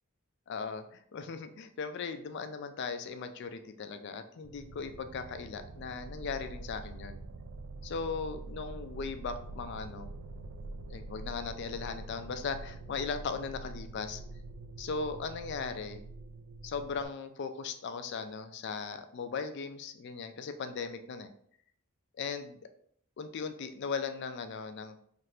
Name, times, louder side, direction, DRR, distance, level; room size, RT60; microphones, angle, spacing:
voice 1, 0.5-7.2 7.8-10.1 10.9-14.2 14.8-16.0 16.6-21.3 22.2-22.6 23.2-25.0, left 5 dB, 50° left, 9 dB, 0.3 m, -38 dB
sound 1, 4.4-17.1, right 2 dB, 80° right, 0.3 m, -45 dB
2.8 x 2.5 x 3.2 m, 0.64 s
head